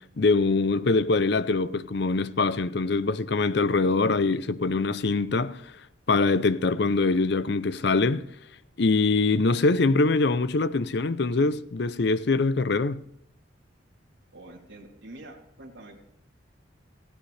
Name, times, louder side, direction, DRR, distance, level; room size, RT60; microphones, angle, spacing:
voice 1, 0.2-5.6 6.1-8.3 8.8-13.0, left 3 dB, 55° left, 0.6 m, -23 dB
voice 2, 14.3-16.0, right 1 dB, 70° right, 3.1 m, -46 dB
18.0 x 15.5 x 3.3 m
head